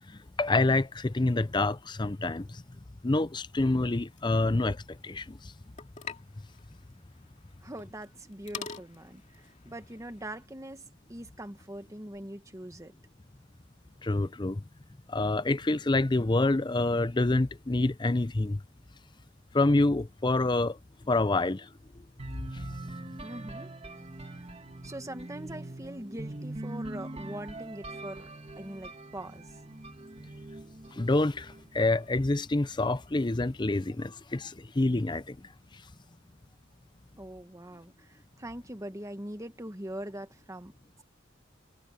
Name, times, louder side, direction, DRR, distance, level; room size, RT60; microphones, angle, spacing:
voice 1, 0.4-2.5 3.0-5.4 14.0-14.6 15.1-18.6 19.5-20.8 21.1-21.7 31.0-35.4, left 2 dB, 25° left, 0.6 m, -27 dB
sound 1, 4.0-10.4, left 5 dB, 40° left, 2.6 m, -47 dB
voice 2, 7.6-12.9 23.2-23.7 24.2-24.4 24.8-28.3 28.6-29.5 37.2-40.7, right 1 dB, 15° right, 1.5 m, -42 dB
sound 2, 22.2-32.0, right 2 dB, 30° right, 1.8 m, -42 dB
head